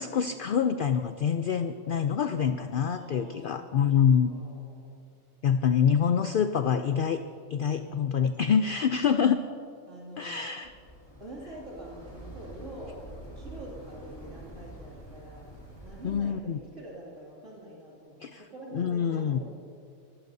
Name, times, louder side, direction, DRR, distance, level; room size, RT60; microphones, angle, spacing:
voice 1, 0.0-4.3 5.4-7.2 7.5-9.4 10.2-10.7 16.0-16.6 18.2-18.4 18.7-19.4, left 7 dB, 65° left, 9 dB, 0.5 m, -26 dB
voice 2, 2.8-3.9 4.3-5.1 7.7-8.2 9.9-10.7 11.2-15.5 15.8-19.5, right 1 dB, 60° right, -5 dB, 3.0 m, -46 dB
sound 1, 10.6-16.2, right 1 dB, 20° left, 3.1 m, -46 dB
25.0 x 15.0 x 2.7 m, 2.4 s
omnidirectional pair, 1.4 m